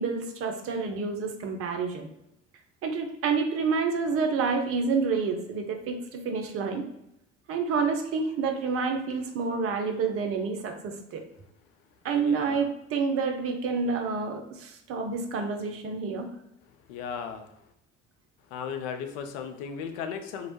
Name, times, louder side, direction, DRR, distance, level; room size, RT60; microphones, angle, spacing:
voice 1, 0.0-2.1 2.8-6.8 7.5-11.2 12.0-16.3, right 5 dB, 40° right, 4 dB, 0.5 m, -28 dB
voice 2, 12.1-12.7 16.9-17.5 18.5-20.5, left 7 dB, 60° left, 7 dB, 0.5 m, -36 dB
3.0 x 2.1 x 3.0 m, 0.81 s
figure-of-eight pair, 55°, 37 cm